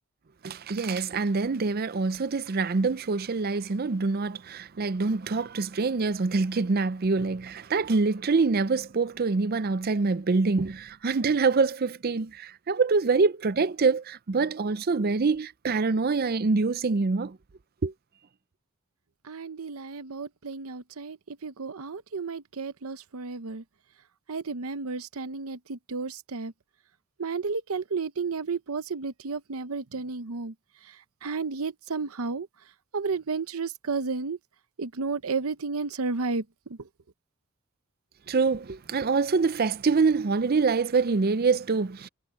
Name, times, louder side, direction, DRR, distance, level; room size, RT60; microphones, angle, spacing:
voice 1, 0.4-17.4 17.8-17.9 38.3-42.1, right 4 dB, 45° right, 0.5 m, -25 dB
voice 2, 19.2-23.6 24.3-26.5 27.2-30.5 30.8-32.5 32.9-34.4 34.8-36.9, right 4 dB, 70° right, 0.8 m, -32 dB
head